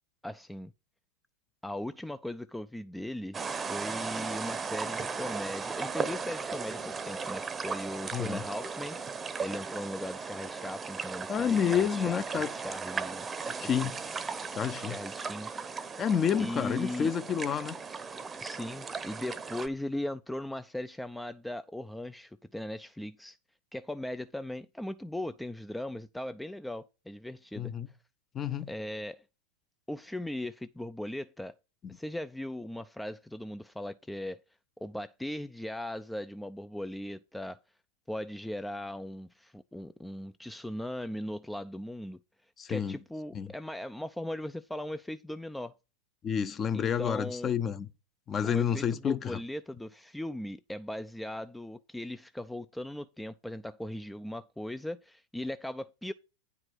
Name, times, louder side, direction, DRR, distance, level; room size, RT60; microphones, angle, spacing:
voice 1, 0.2-0.7 1.6-13.2 13.5-13.9 14.8-15.5 16.4-17.1 18.4-23.4 23.7-27.7 28.7-29.2 29.9-31.6 31.9-34.4 34.8-37.6 38.1-42.2 42.7-45.7 46.7-47.5 48.4-56.1, left 1 dB, 5° left, 0.4 m, -38 dB
sound 1, 3.3-19.7, right 5 dB, 20° right, 0.8 m, -37 dB
voice 2, 8.1-8.4 11.3-12.5 13.5-14.0 14.5-15.0 16.0-17.8 27.6-27.9 28.3-28.7 31.8-32.0 42.6-43.0 43.3-43.5 46.2-47.9 48.3-49.4, left 8 dB, 30° left, 0.8 m, -29 dB
9.6 x 4.8 x 6.2 m
hypercardioid pair, 95°, 0 cm